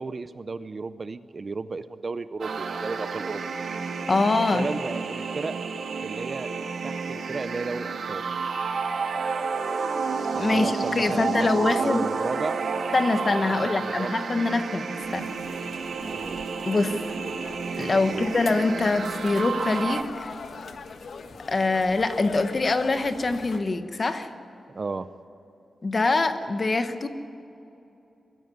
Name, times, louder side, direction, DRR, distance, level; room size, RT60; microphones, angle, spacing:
voice 1, 0.0-3.4 4.5-5.5 6.0-6.5 6.8-8.2 10.3-12.6 13.6-14.2 16.0-16.4 17.9-18.3 24.7-25.1, right 3 dB, 35° right, 13 dB, 0.6 m, -33 dB
sound 1, 2.4-20.0, right 5 dB, 70° right, 1.6 m, -31 dB
voice 2, 4.1-4.7 10.4-12.0 12.9-15.3 16.6-17.0 17.8-20.3 21.5-24.3 25.8-27.1, left 3 dB, 30° left, 9 dB, 1.2 m, -24 dB
sound 2, 15.0-23.6, left 5 dB, 60° left, 1.2 m, -41 dB
23.0 x 15.5 x 9.4 m, 2.8 s
wide cardioid pair, 175°, 0 cm